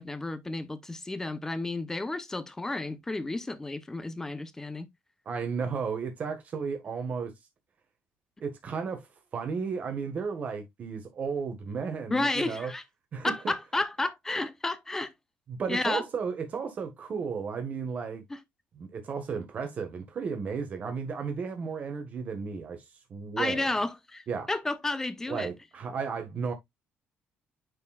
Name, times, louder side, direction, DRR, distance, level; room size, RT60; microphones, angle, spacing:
voice 1, 0.0-4.9 12.1-12.8 13.2-15.1 15.7-16.0 18.3-18.4 23.4-25.5, left 2 dB, 10° left, 0.8 m, -32 dB
voice 2, 5.2-7.3 8.4-9.1 9.3-12.7 13.1-13.5 15.5-18.2 18.7-22.8 23.1-23.7 24.3-24.5 25.3-26.5, right 5 dB, 40° right, 1.5 m, -34 dB
9.5 x 4.6 x 2.4 m
cardioid pair, 145°, 4 cm